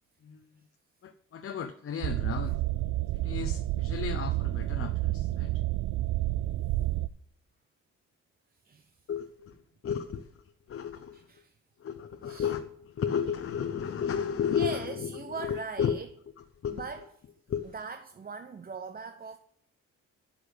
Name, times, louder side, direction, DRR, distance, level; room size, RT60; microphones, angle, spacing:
voice 1, 1.0-2.5 3.1-5.5 9.1-9.6 9.8-10.3 10.7-11.3 11.8-16.0 16.6-16.9 17.5-17.7, left 8 dB, 45° left, 0.8 m, -33 dB
sound 1, 2.0-7.1, right 16 dB, 70° right, 0.4 m, -30 dB
voice 2, 11.1-11.6 12.2-12.5 14.5-16.1 16.7-17.1 17.7-19.4, right 5 dB, 30° right, 0.8 m, -40 dB
8.5 x 8.1 x 8.1 m
cardioid pair, 90°, 30 cm